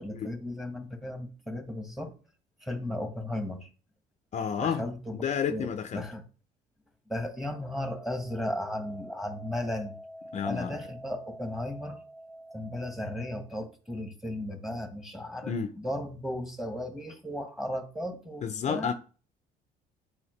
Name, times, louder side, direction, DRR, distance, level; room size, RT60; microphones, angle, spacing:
voice 1, 0.0-2.1 2.6-3.7 4.6-6.2 7.1-18.9, left 1 dB, ahead, 1.5 m, -36 dB
voice 2, 4.3-4.9 5.2-6.0 10.3-10.8 15.4-15.7 18.4-18.9, left 7 dB, 45° left, 0.6 m, -30 dB
8.6 x 4.4 x 3.2 m
cardioid pair, 110°, 17 cm